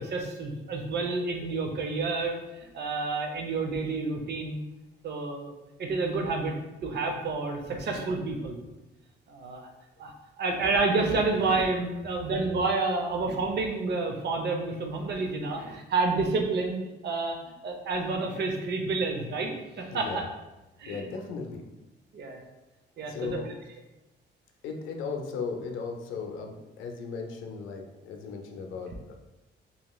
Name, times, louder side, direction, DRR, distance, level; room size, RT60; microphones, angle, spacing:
voice 1, 0.0-4.6 5.0-6.6 6.8-8.6 9.3-9.7 10.0-20.2 20.8-21.0 22.1-22.4 23.0-23.4, right 3 dB, 60° right, 4 dB, 0.5 m, -29 dB
voice 2, 19.9-20.3 20.8-21.7 23.0-23.5 24.6-29.1, left 5 dB, 80° left, 3 dB, 0.5 m, -36 dB
2.9 x 2.8 x 2.2 m, 1.0 s
cardioid pair, 90°, 20 cm